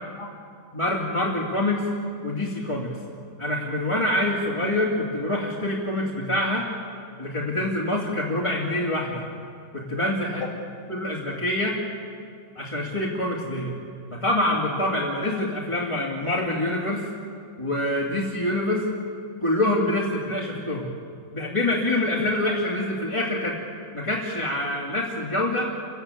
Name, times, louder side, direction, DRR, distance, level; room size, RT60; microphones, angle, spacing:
voice 1, 0.7-1.9 2.2-2.9 3.4-6.7 7.2-9.2 9.7-10.5 10.9-11.8 12.6-13.7 14.1-17.1 17.6-18.9 19.4-20.9 21.3-23.6 23.9-25.7, left 1 dB, 20° left, -5 dB, 2.6 m, -25 dB
28.0 x 16.5 x 9.2 m, 2.3 s
omnidirectional pair, 1.5 m